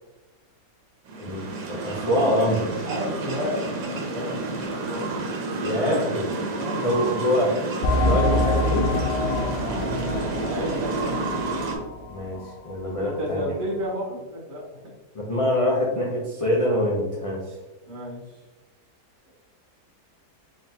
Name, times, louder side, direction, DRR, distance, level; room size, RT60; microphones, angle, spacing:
sound 1, 1.0-11.8, right 3 dB, 85° right, 1.3 m, -30 dB
voice 1, 1.7-2.7 5.6-6.2 6.8-7.6 8.1-9.0 12.1-13.6 15.1-17.6, left 1 dB, 45° left, -5 dB, 0.4 m, -24 dB
voice 2, 2.9-5.1 5.4-6.1 6.4-7.3 9.8-11.3 13.0-14.6 17.8-18.4, equal, 55° right, -3 dB, 1.5 m, -32 dB
sound 2, 7.8-12.1 12.4-12.5 13.1-13.2, left 2 dB, 85° left, 1.2 m, -26 dB
3.7 x 3.5 x 2.8 m, 1.0 s
omnidirectional pair, 1.7 m